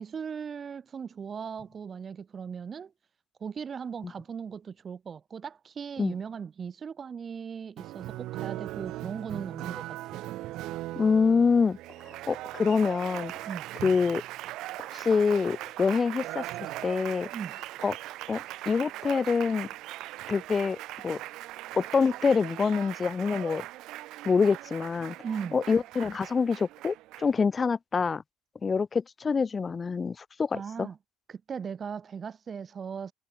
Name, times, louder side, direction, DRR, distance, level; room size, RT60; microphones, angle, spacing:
voice 1, 0.0-2.9 3.4-10.2 13.5-13.7 17.3-17.6 25.2-25.6 30.5-31.0 31.3-33.1, right 6 dB, 35° right, 0.6 m, -38 dB
Applause, 7.8-27.4, right 16 dB, 55° right, 2.3 m, -39 dB
voice 2, 11.0-11.8 12.1-13.3 13.8-14.2 14.9-17.3 17.8-18.0 18.3-19.7 20.3-20.8 21.0-21.2 21.7-23.7 24.2-25.2 25.5-28.2 28.6-30.9, left 5 dB, 25° left, 0.4 m, -26 dB
figure-of-eight pair, 65°, 0 cm